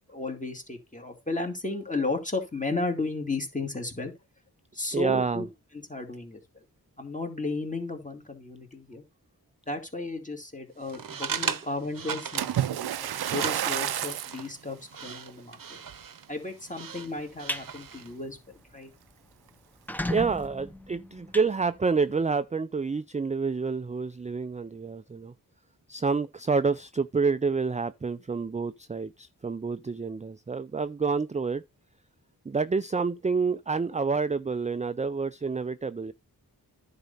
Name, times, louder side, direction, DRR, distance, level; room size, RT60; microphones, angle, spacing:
voice 1, 0.1-4.1 4.7-5.5 5.9-6.4 7.0-9.0 9.7-15.6 16.3-18.9, left 2 dB, 20° left, 2.4 m, -34 dB
voice 2, 4.9-5.4 20.1-25.3 25.9-31.6 32.5-36.1, right 4 dB, 20° right, 0.4 m, -28 dB
sound 1, 10.8-18.1, right 7 dB, 60° right, 0.8 m, -38 dB
Splash splatter, 12.4-14.4 15.1-15.3 15.9-16.0, right 11 dB, 80° right, 0.5 m, -29 dB
sound 2, 17.2-17.7 18.1-18.3 18.7-18.8 19.0-19.1 19.7-22.2, left 1 dB, 5° left, 0.7 m, -35 dB
10.5 x 4.2 x 5.4 m
wide cardioid pair, 75°, 38 cm